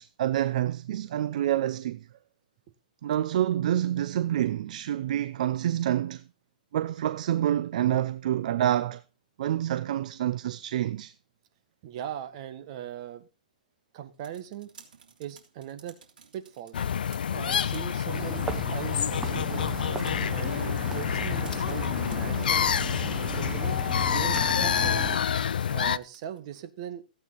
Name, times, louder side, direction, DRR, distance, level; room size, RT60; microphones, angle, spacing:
voice 1, 0.0-2.1 3.0-6.2 6.7-9.0 9.4-11.1, right 12 dB, 55° right, 0.6 m, -27 dB
voice 2, 11.8-13.3 13.9-14.8 15.2-16.0 16.3-16.8 17.3-19.9 20.3-22.7 23.3-25.0 25.6-27.0, right 10 dB, 40° right, 1.6 m, -39 dB
sound 1, 14.0-26.5, right 6 dB, 80° right, 3.4 m, -57 dB
sound 2, 16.7-26.0, left 8 dB, 90° left, 0.5 m, -27 dB
sound 3, 18.1-25.2, right 4 dB, 10° right, 1.1 m, -37 dB
15.5 x 8.6 x 4.0 m
hypercardioid pair, 160°, 5 cm